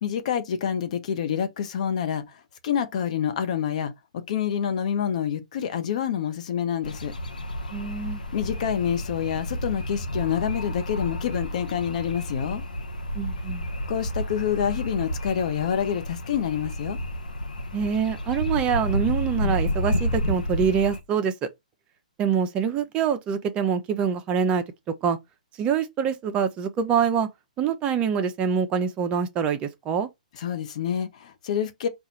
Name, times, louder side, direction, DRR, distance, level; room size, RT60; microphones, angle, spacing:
voice 1, 0.0-2.2 2.6-7.1 8.3-12.6 13.9-17.0 30.4-31.9, left 8 dB, 55° left, 0.9 m, -27 dB
sound 1, 6.8-21.0, left 1 dB, 90° left, 0.9 m, -30 dB
voice 2, 7.7-8.2 13.1-13.7 17.7-21.5 22.2-24.6 25.0-25.2 25.6-27.3 27.6-30.1, right 7 dB, 25° right, 0.7 m, -25 dB
4.4 x 2.5 x 4.2 m
hypercardioid pair, 130°, 4 cm